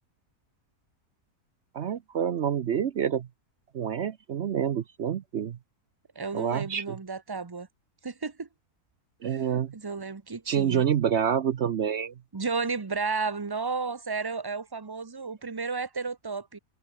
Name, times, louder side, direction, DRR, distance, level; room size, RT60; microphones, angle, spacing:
voice 1, 1.7-3.3 3.7-5.6 6.3-7.0 9.2-9.7 10.5-12.1, right 8 dB, 55° right, 0.8 m, -27 dB
voice 2, 6.2-7.7 8.0-8.5 9.2-9.4 9.7-10.8 12.3-16.6, right 4 dB, 30° right, 0.4 m, -33 dB
omnidirectional pair, 1.7 m